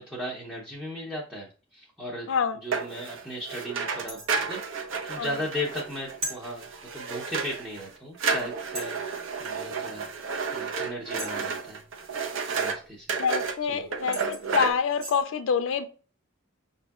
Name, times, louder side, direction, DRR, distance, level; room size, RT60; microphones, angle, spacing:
voice 1, 0.0-2.3 2.5-4.6 5.0-6.7 6.9-11.8 12.5-13.1 13.6-13.9, equal, 5° right, -5 dB, 0.7 m, -37 dB
voice 2, 2.3-2.6 5.2-5.4 13.2-15.9, left 6 dB, 70° left, 9 dB, 0.4 m, -26 dB
sound 1, 2.7-7.9 8.2-12.8 13.1-13.6 13.9-14.7, right 5 dB, 70° right, 0.6 m, -31 dB
sound 2, 4.1-4.4 6.2-6.4 7.8-7.9 8.8-9.0 11.2-11.6 13.6-13.7 14.1-15.2, equal, 90° right, 1.6 m, -37 dB
6.1 x 2.7 x 2.3 m, 0.37 s
head